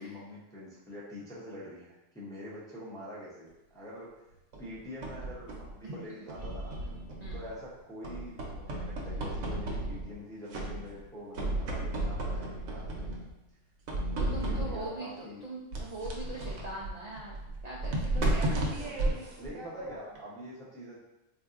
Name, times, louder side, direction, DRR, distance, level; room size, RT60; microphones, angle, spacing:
voice 1, 0.0-4.1 4.6-6.9 7.3-13.1 14.1-15.4 18.7-21.0, equal, 5° left, -7 dB, 0.4 m, -45 dB
sound 1, 4.5-5.8 6.3-7.6 8.0-10.2 10.5-11.1 11.3-13.3 13.9-15.0 15.7-20.2, right 1 dB, 85° right, 1.0 m, -34 dB
voice 2, 14.2-18.0 18.3-18.4, right 1 dB, 60° right, -5 dB, 0.4 m, -41 dB
3.9 x 2.6 x 2.4 m, 0.96 s
omnidirectional pair, 1.3 m